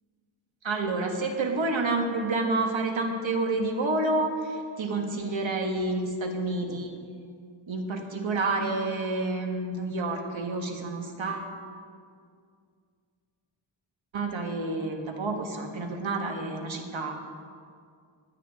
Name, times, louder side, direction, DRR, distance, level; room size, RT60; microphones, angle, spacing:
voice 1, 0.6-6.9 7.7-11.5 14.1-17.1, right 2 dB, 70° right, 3 dB, 1.5 m, -29 dB
16.0 x 9.9 x 3.5 m, 2.2 s
wide cardioid pair, 110°, 47 cm